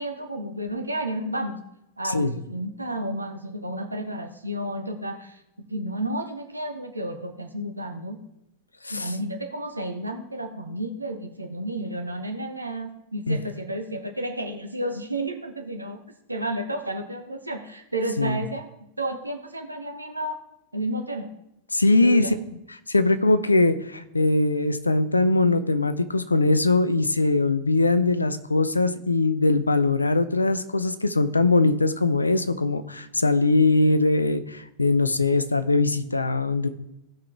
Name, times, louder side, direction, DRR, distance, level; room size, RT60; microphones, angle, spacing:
voice 1, 0.0-1.6 2.0-5.4 5.7-8.2 8.9-16.0 16.3-18.7 19.0-20.4 20.7-21.3 22.0-22.3, right 1 dB, 85° right, 5 dB, 1.1 m, -31 dB
voice 2, 21.7-22.4 22.9-36.7, left 2 dB, 80° left, 11 dB, 0.7 m, -21 dB
16.5 x 5.7 x 3.4 m, 0.84 s
figure-of-eight pair, 90°, 0 cm